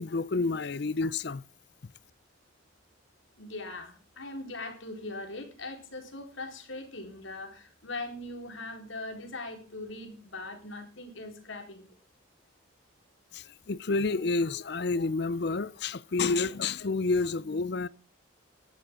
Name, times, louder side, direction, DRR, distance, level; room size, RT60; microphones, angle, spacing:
voice 1, 0.0-1.4 13.3-17.9, left 3 dB, 55° left, 0.5 m, -29 dB
voice 2, 3.4-11.9, left 2 dB, 75° left, 4.2 m, -40 dB
18.5 x 11.5 x 3.7 m
head